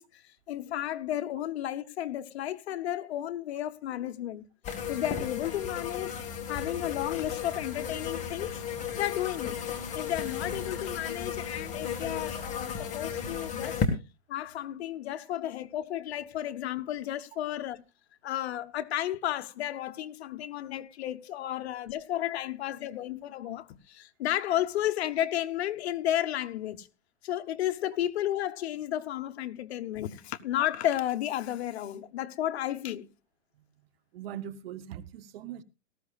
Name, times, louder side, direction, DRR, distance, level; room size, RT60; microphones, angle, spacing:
voice 1, 0.0-4.4 4.9-6.2 6.5-8.6 8.9-9.6 9.9-13.8 14.3-17.8 18.2-26.9 27.2-33.1, left 12 dB, 60° left, 1.0 m, -33 dB
sound 1, 4.6-13.9, left 7 dB, 20° left, 1.8 m, -34 dB
voice 2, 34.1-35.6, right 10 dB, 50° right, 1.0 m, -40 dB
18.0 x 14.0 x 2.4 m
hypercardioid pair, 150°, 36 cm